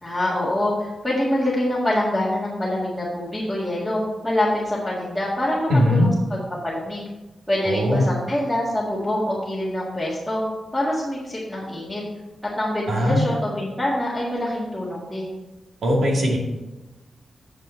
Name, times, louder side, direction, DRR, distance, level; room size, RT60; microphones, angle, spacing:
voice 1, 0.0-7.1 7.5-10.4 10.7-12.0 12.6-15.3, left 1 dB, ahead, -9 dB, 1.8 m, -25 dB
voice 2, 5.7-6.1 7.6-8.1 12.9-13.3 15.8-16.4, left 1 dB, 75° right, -1 dB, 2.3 m, -19 dB
9.0 x 7.4 x 4.3 m, 1.1 s
wide cardioid pair, 170°, 0 cm